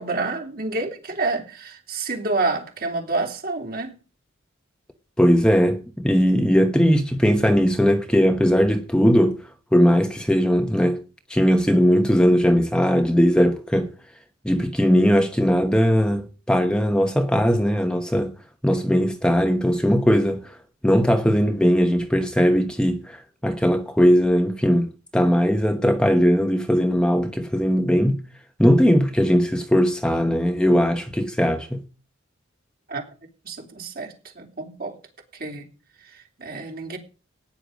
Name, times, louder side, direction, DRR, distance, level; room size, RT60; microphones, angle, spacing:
voice 1, 0.0-3.9 32.9-33.0 33.4-35.0 35.3-35.7 36.1-37.0, right 3 dB, 50° right, 3.3 m, -28 dB
voice 2, 5.2-9.4 9.7-11.0 11.3-13.9 14.4-18.3 18.6-20.5 20.8-28.2 28.6-31.8, equal, 5° left, 1.0 m, -19 dB
15.0 x 9.8 x 5.2 m
head